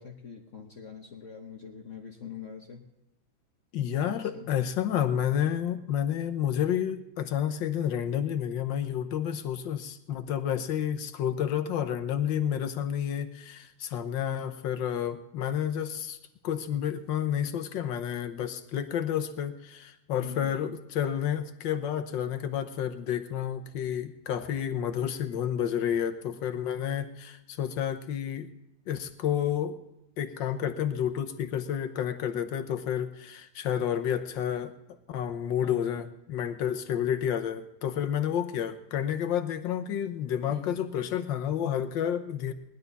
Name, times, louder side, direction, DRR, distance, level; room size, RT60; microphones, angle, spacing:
voice 1, 0.0-2.9 4.1-4.5 5.4-5.5 20.2-20.6 35.6-36.0 40.5-40.9, left 7 dB, 45° left, 1 dB, 1.3 m, -43 dB
voice 2, 3.7-16.2 16.4-28.5 28.9-29.8 30.2-34.7 35.1-42.5, left 9 dB, 70° left, 9 dB, 1.7 m, -30 dB
19.0 x 11.5 x 4.0 m, 0.87 s
omnidirectional pair, 2.1 m